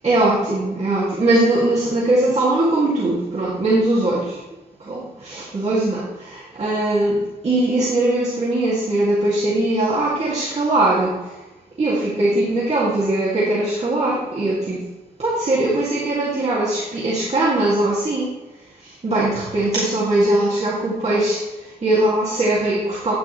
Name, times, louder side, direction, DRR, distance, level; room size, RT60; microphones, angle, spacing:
voice 1, 0.0-4.4 4.8-11.3 11.8-14.8 15.2-18.4 18.8-23.1, right 2 dB, 40° right, -7 dB, 2.2 m, -20 dB
9.6 x 9.3 x 3.1 m, 1.1 s
wide cardioid pair, 145°, 16 cm